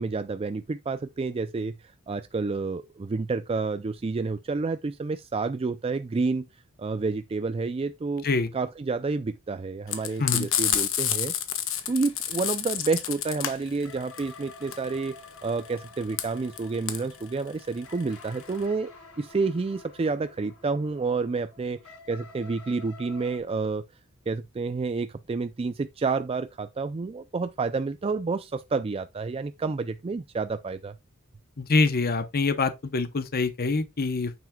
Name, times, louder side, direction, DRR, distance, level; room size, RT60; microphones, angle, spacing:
voice 1, 0.0-6.5 6.8-8.3 8.5-11.3 11.9-15.1 15.4-18.9 19.2-23.8 24.3-31.0, right 4 dB, 25° right, 0.4 m, -29 dB
Frying (food), 9.9-18.6, left 10 dB, 60° left, 1.4 m, -29 dB
sound 1, 13.8-23.4, left 4 dB, 90° left, 5.5 m, -49 dB
voice 2, 31.6-34.3, left 3 dB, 45° left, 0.8 m, -25 dB
9.4 x 7.2 x 2.3 m
head